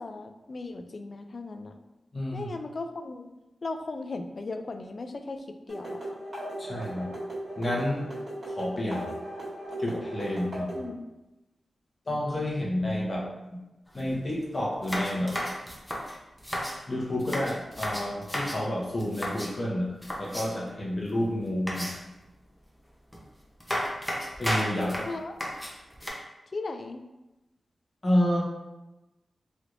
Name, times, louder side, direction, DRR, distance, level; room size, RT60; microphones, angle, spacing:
voice 1, 0.0-1.8 2.3-3.3 3.6-6.0 10.7-11.1 25.1-25.4 26.5-27.0, left 3 dB, 55° left, 6 dB, 0.3 m, -37 dB
voice 2, 2.1-2.5 6.6-7.1 7.6-8.1 8.5-9.1 9.8-10.7 12.1-13.6 13.9-15.3 16.9-21.9 24.4-25.1 28.0-28.4, left 1 dB, 40° left, -4 dB, 1.1 m, -29 dB
sound 1, 5.7-10.9, right 1 dB, 65° right, 1.4 m, -37 dB
sound 2, 13.9-14.0 14.3-14.4 14.8-16.8 17.2-18.6 19.0-19.6 20.0-20.7 21.7-22.2 23.1-23.2 23.6-26.1, equal, 10° left, 0.8 m, -33 dB
3.3 x 2.9 x 2.5 m, 1.0 s
cardioid pair, 50°, 0 cm